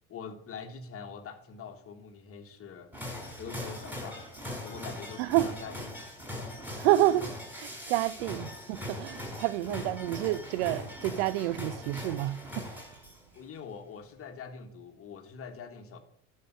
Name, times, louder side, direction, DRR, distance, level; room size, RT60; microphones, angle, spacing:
voice 1, 0.1-2.9 3.4-4.3 4.6-5.9 6.3-7.3 8.3-8.4 9.7-9.9 13.3-16.0, left 6 dB, 30° left, 1.4 m, -44 dB
sound 1, 2.9-13.4, left 1 dB, 5° right, 4.9 m, -41 dB
voice 2, 5.2-5.5 6.8-7.3 7.6-12.9, right 15 dB, 55° right, 0.5 m, -29 dB
11.0 x 6.6 x 5.1 m
figure-of-eight pair, 60°, 42 cm